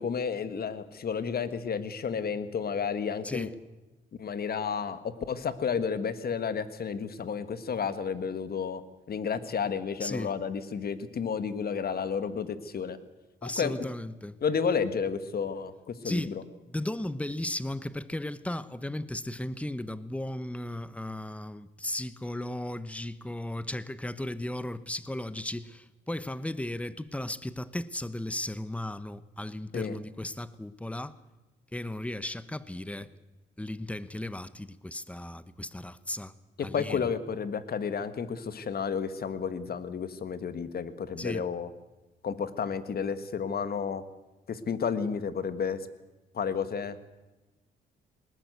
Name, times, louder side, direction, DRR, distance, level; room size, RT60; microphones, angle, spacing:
voice 1, 0.0-3.5 4.2-8.8 9.1-13.0 13.4-13.9 14.4-16.4 29.7-30.0 36.6-41.7 42.2-44.0 44.5-45.8 46.3-47.1, left 6 dB, 50° left, 1.7 m, -31 dB
voice 2, 10.0-10.3 13.4-14.4 16.0-16.4 16.7-31.2 31.7-33.1 33.6-36.3 36.6-37.1 41.2-41.4, left 1 dB, 5° left, 1.0 m, -35 dB
20.0 x 18.5 x 8.1 m
cardioid pair, 90°, 20 cm